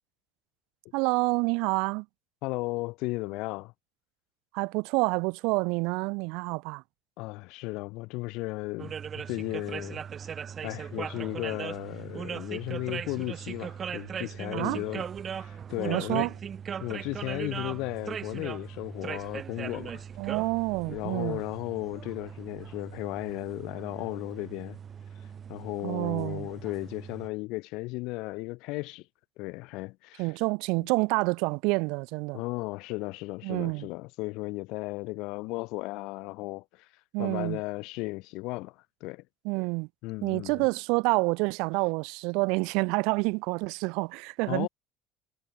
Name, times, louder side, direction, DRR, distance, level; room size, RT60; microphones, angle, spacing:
voice 1, 0.9-2.1 4.5-6.8 14.5-14.8 15.8-16.3 20.2-21.4 25.8-26.5 30.2-32.4 33.4-33.9 37.1-37.6 39.4-39.9 40.2-44.7, right 29 dB, 70° right, 0.4 m, -28 dB
voice 2, 2.4-3.7 7.2-8.9 9.3-10.0 10.6-15.1 15.3-16.3 16.8-20.0 20.9-24.8 25.5-29.1 29.4-30.3 32.3-36.9 37.2-39.2 40.0-40.6 44.5-44.7, left 23 dB, 65° left, 0.5 m, -35 dB
sound 1, 8.8-27.3, right 7 dB, 25° right, 1.1 m, -39 dB
cardioid pair, 175°, 0 cm